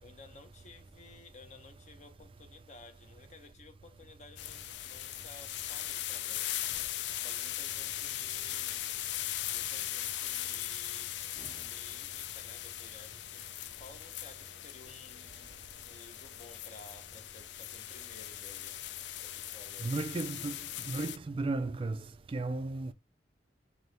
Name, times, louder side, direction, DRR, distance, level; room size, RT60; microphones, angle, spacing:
voice 1, 0.0-6.5 7.2-8.9 9.5-11.1 11.6-15.6 15.9-18.8 19.2-19.9, left 3 dB, 40° left, 0.7 m, -54 dB
sound 1, 4.4-21.2, left 13 dB, 70° left, 0.4 m, -39 dB
voice 2, 19.8-20.6 20.8-22.9, right 3 dB, 30° right, 0.3 m, -35 dB
4.2 x 2.6 x 3.2 m
head